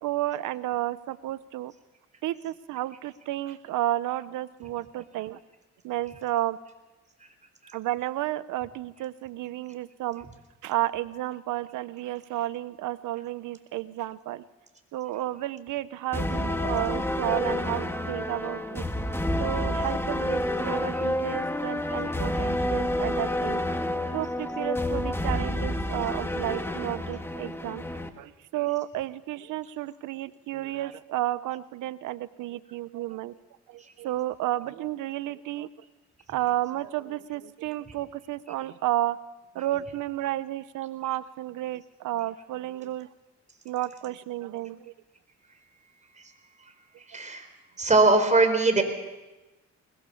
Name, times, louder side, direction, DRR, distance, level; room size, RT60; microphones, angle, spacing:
voice 1, 0.0-1.7 2.2-5.4 5.8-6.6 7.7-10.3 10.6-14.4 14.9-18.9 19.4-23.6 24.1-27.9 28.2-33.3 33.7-35.7 36.3-39.2 39.5-43.1 43.6-44.9, right 14 dB, 85° right, 16 dB, 0.9 m, -32 dB
sound 1, 16.1-28.1, left 1 dB, 10° left, 1.9 m, -29 dB
voice 2, 47.1-47.5 47.8-48.8, right 3 dB, 25° right, 6 dB, 4.3 m, -21 dB
21.5 x 21.0 x 7.1 m, 1.1 s
cardioid pair, 90°, 30 cm